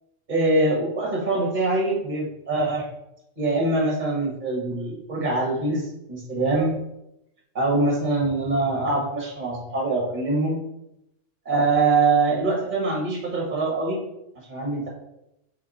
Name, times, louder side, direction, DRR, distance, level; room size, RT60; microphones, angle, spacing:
voice 1, 0.3-2.9 3.4-6.8 7.5-10.6 11.5-14.0 14.5-14.9, right 2 dB, 40° right, -2 dB, 1.8 m, -23 dB
6.5 x 3.7 x 4.2 m, 0.85 s
omnidirectional pair, 1.3 m